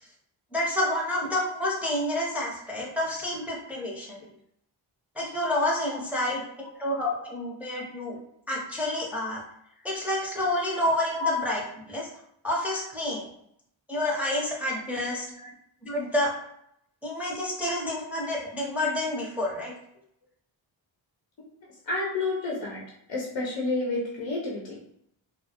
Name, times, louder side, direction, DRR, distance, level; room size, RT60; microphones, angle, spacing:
voice 1, 0.5-4.2 5.2-8.2 8.5-9.4 9.8-11.6 11.9-12.1 12.4-13.3 13.9-15.3 15.8-16.3 17.0-19.7, left 1 dB, 5° right, -4 dB, 0.6 m, -29 dB
voice 2, 21.8-22.8 23.1-24.8, left 3 dB, 70° left, -4 dB, 0.7 m, -30 dB
2.1 x 2.0 x 2.8 m, 0.73 s
cardioid pair, 55°, 47 cm